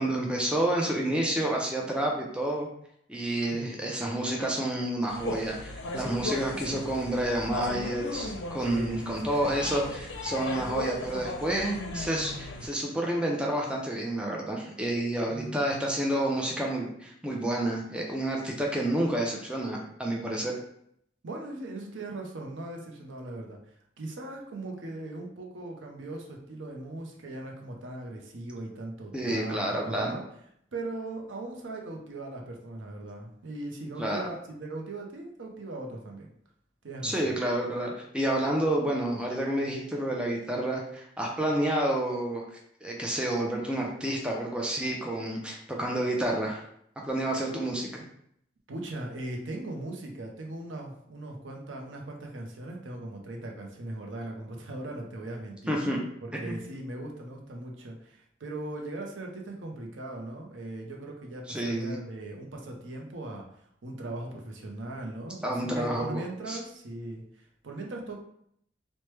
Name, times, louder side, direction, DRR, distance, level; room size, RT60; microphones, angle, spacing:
voice 1, 0.0-2.7 3.1-20.6 29.1-30.1 34.0-34.3 37.0-42.4 42.8-46.6 47.0-48.0 55.7-56.0 56.4-56.6 61.5-62.0 65.4-66.2 66.5-66.6, right 1 dB, 5° right, -1 dB, 0.4 m, -29 dB
sound 1, 5.1-12.7, left 2 dB, 80° left, 0.5 m, -36 dB
voice 2, 8.6-9.8 15.3-16.0 21.2-30.2 30.7-36.3 36.8-37.4 47.5-47.7 48.7-55.8 56.2-63.5 63.8-68.2, right 2 dB, 85° right, 1 dB, 0.6 m, -39 dB
3.1 x 2.1 x 3.1 m, 0.70 s
head